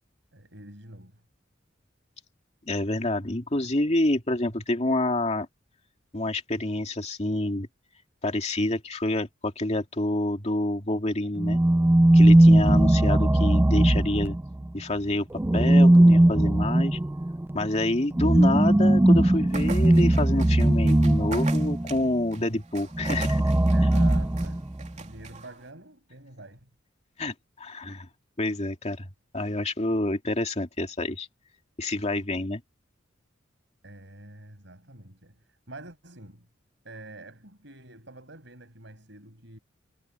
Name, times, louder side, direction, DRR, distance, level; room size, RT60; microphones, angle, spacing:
voice 1, 0.3-1.2 23.7-26.7 33.8-36.5 36.8-39.6, right 2 dB, 65° right, 6.3 m, -46 dB
voice 2, 2.7-5.5 6.1-7.7 8.2-11.6 12.1-14.4 14.7-15.3 15.5-17.0 17.5-23.5 27.2-28.1 28.4-29.1 29.3-31.3 31.8-32.6, left 1 dB, 35° left, 2.4 m, -28 dB
sound 1, 11.4-14.7 15.4-22.0 22.9-24.9, right 1 dB, 10° right, 0.3 m, -19 dB
sound 2, 19.5-25.7, right 4 dB, 40° right, 3.0 m, -42 dB
head